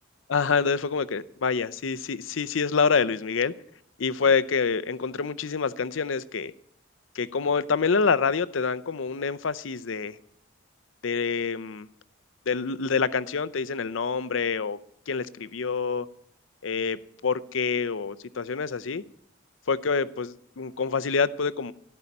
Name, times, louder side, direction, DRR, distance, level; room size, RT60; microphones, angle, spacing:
voice 1, 0.3-3.5 4.0-6.5 7.1-10.2 11.0-11.9 12.5-14.8 15.1-16.1 16.6-19.0 19.7-21.7, left 5 dB, 70° left, 0.6 m, -26 dB
16.5 x 5.6 x 9.7 m
head